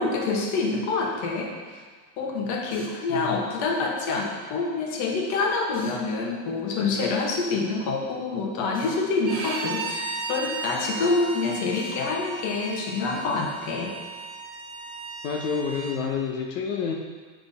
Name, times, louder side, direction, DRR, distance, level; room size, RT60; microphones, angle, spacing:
voice 1, 0.0-1.5 2.2-13.9, left 3 dB, 45° left, 0 dB, 1.4 m, -26 dB
Drill, 2.7-3.0 5.7-6.0 8.7-9.0 11.7-12.0, left 2 dB, 20° left, 1.3 m, -44 dB
Bowed string instrument, 9.2-16.0, right 3 dB, 25° right, 1.9 m, -35 dB
voice 2, 15.2-16.9, left 6 dB, 80° left, 0 dB, 1.1 m, -28 dB
8.0 x 6.2 x 4.3 m, 1.5 s
supercardioid pair, 165°, 40 cm